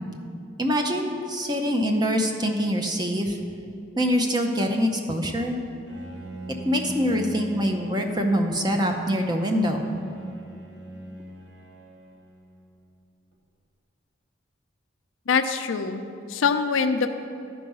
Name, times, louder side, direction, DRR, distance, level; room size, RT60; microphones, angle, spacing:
voice 1, 0.6-3.4 4.0-5.6 6.6-9.9, equal, 20° right, 3 dB, 0.6 m, -24 dB
Bowed string instrument, 5.9-13.0, right 1 dB, 65° right, 1.0 m, -41 dB
voice 2, 15.3-16.0 16.3-17.1, left 5 dB, 80° left, 8 dB, 0.5 m, -23 dB
12.0 x 4.7 x 5.4 m, 2.5 s
head